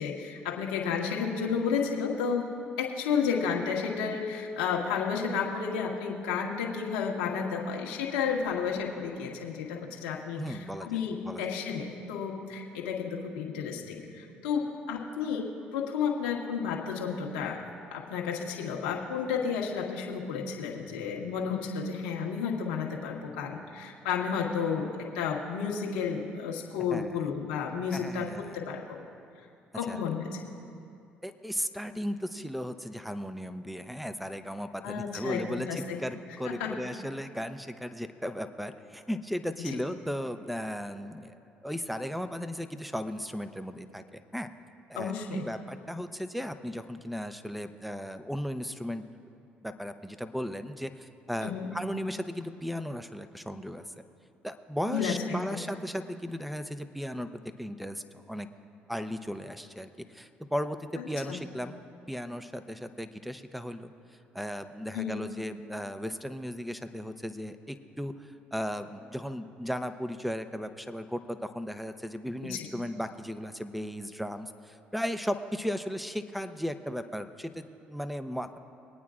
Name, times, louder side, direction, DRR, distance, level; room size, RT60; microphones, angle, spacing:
voice 1, 0.0-2.5 2.8-17.6 17.9-29.0 29.7-30.4 34.8-36.0 36.4-36.7 39.6-39.8 44.9-45.5 51.4-51.7 54.8-55.6 61.0-61.4 64.9-65.2 72.4-72.6, left 6 dB, 90° left, -1 dB, 1.4 m, -32 dB
voice 2, 10.4-10.9 11.2-11.5 26.9-27.3 27.9-28.6 29.9-30.0 31.2-44.5 44.9-49.0 49.6-53.8 54.4-57.3 57.6-58.5 58.9-61.8 62.1-63.9 64.3-78.6, equal, ahead, 9 dB, 0.7 m, -36 dB
23.5 x 9.2 x 2.5 m, 2.5 s
hypercardioid pair, 60°, 4 cm